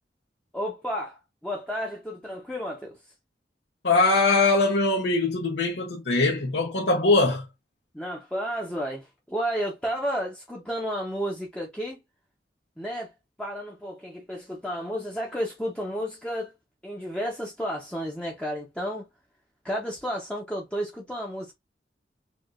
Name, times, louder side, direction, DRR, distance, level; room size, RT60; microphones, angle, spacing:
voice 1, 0.5-3.0 7.9-12.0 12.8-13.1 13.4-16.5 16.8-19.0 19.6-21.5, equal, 5° left, 0.7 m, -32 dB
voice 2, 3.8-7.5, left 3 dB, 85° left, 0.8 m, -22 dB
4.5 x 2.4 x 2.4 m
head